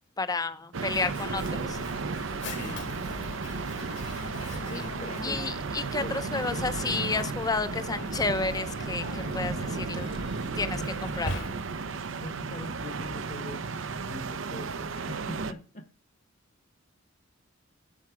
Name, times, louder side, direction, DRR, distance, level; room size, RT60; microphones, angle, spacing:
voice 1, 0.2-1.8 5.2-10.1 10.6-10.8 11.2-11.4, left 3 dB, 20° left, 0.6 m, -31 dB
sound 1, 0.7-15.5, right 4 dB, 70° right, 0.6 m, -34 dB
Mechanisms, 0.8-12.0, left 2 dB, 60° left, 1.7 m, -41 dB
voice 2, 2.4-2.9 4.5-5.5 6.0-6.8 10.6-10.9 12.2-13.7 14.0-15.9, left 1 dB, 40° left, 1.1 m, -42 dB
sound 2, 9.8-11.4, right 1 dB, 85° right, 3.2 m, -56 dB
7.7 x 7.7 x 4.8 m
head